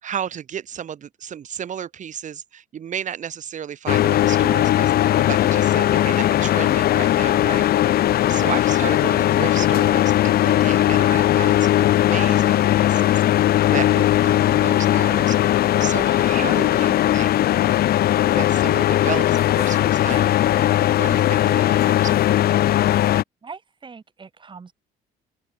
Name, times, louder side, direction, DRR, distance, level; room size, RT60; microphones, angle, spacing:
voice 1, 0.0-17.4 18.3-22.3, right 9 dB, 45° right, 2.8 m, -33 dB
sound 1, 3.9-23.2, left 13 dB, 65° left, 2.1 m, -18 dB
voice 2, 23.4-24.7, right 5 dB, 30° right, 6.7 m, -41 dB
cardioid pair, 110°, 17 cm